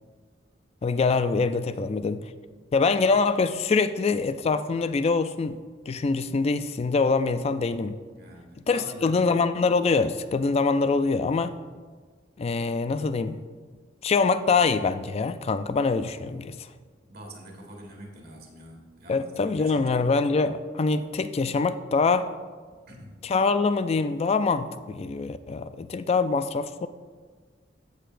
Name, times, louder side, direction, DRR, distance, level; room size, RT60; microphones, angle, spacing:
voice 1, 0.8-2.2 2.7-5.6 5.9-8.0 8.7-11.6 12.4-13.4 14.0-16.5 19.1-22.3 23.2-26.9, left 4 dB, 35° left, 0.3 m, -24 dB
voice 2, 8.1-9.2 17.1-19.3 19.6-20.2 22.7-23.2, right 1 dB, 55° right, 1.7 m, -45 dB
15.0 x 6.6 x 2.5 m
head